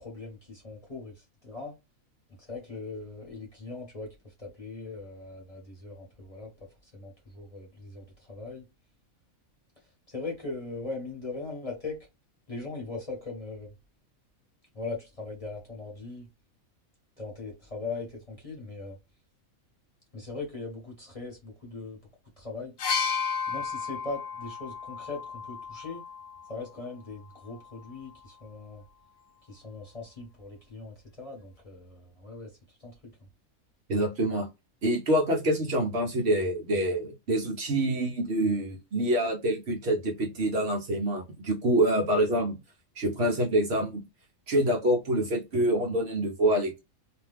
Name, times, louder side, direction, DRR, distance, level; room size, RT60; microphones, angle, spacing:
voice 1, 0.0-1.7 2.4-6.5 6.8-8.7 10.1-12.0 12.5-13.7 14.7-16.3 17.2-19.0 20.1-22.0 22.4-22.7 23.5-26.0 26.5-28.8 29.5-32.5 32.8-33.1, left 3 dB, 30° left, 1.0 m, -40 dB
sound 1, 22.8-26.6 27.6-27.8, left 6 dB, 60° left, 0.6 m, -33 dB
voice 2, 33.9-34.5 34.8-42.6 43.0-44.0 44.5-46.8, right 1 dB, 55° right, 1.0 m, -26 dB
2.7 x 2.2 x 3.4 m
omnidirectional pair, 1.4 m